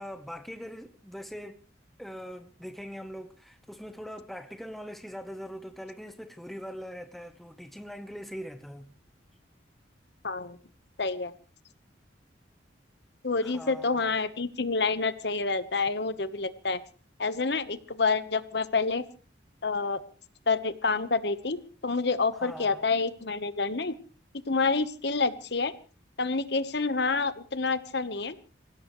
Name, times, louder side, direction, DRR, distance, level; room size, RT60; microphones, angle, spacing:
voice 1, 0.0-1.6 2.0-8.9 13.4-14.1 22.3-22.9, equal, ahead, 1.0 m, -42 dB
voice 2, 10.2-10.6 11.0-11.3 13.2-16.8 17.2-19.0 19.6-20.0 20.5-21.6 21.8-23.9 24.5-25.7 26.2-28.4, left 4 dB, 60° left, 1.1 m, -28 dB
27.0 x 16.5 x 3.1 m
head